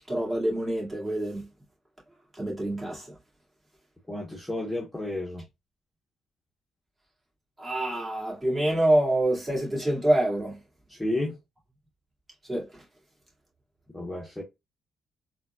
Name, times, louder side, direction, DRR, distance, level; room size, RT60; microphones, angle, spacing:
voice 1, 0.1-1.4 2.4-3.1 7.6-10.6 12.5-12.6, right 1 dB, 25° right, 2.0 m, -26 dB
voice 2, 4.1-5.4 10.9-11.4 13.9-14.4, left 1 dB, 5° left, 0.9 m, -31 dB
3.8 x 2.3 x 2.2 m
cardioid pair, 90°, 0 cm